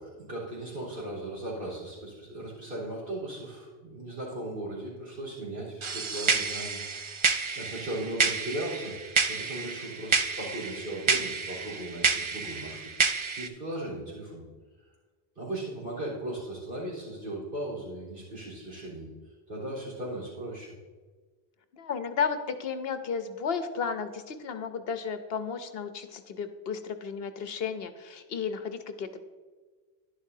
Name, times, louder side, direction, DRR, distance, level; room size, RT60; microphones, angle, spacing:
voice 1, 0.0-6.8 7.5-9.0 9.3-12.9 13.3-14.5 15.4-19.1 19.5-20.7, right 1 dB, 70° right, -6 dB, 4.0 m, -37 dB
sound 1, 5.8-13.5, right 4 dB, 45° right, 0.4 m, -29 dB
voice 2, 21.7-29.3, left 6 dB, 70° left, 9 dB, 0.9 m, -33 dB
11.5 x 11.0 x 2.7 m, 1.4 s
omnidirectional pair, 1.1 m